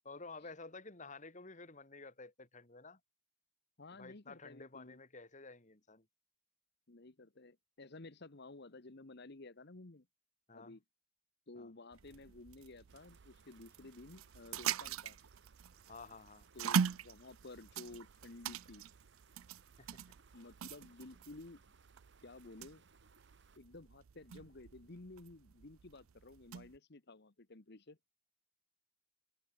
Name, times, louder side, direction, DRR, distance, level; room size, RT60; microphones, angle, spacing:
voice 1, 0.0-3.0 4.0-6.1 10.5-10.8 11.6-11.7 15.9-16.5 19.8-20.2, left 3 dB, 35° left, 2.5 m, -52 dB
voice 2, 3.8-5.0 6.9-10.1 10.5-10.8 11.5-15.2 16.5-18.9 20.3-21.6 22.2-22.8 23.6-28.0, left 2 dB, 55° left, 1.2 m, -54 dB
sound 1, 11.9-26.8, right 7 dB, 80° right, 0.5 m, -42 dB
sound 2, 12.9-23.6, right 5 dB, 60° right, 6.4 m, -68 dB
head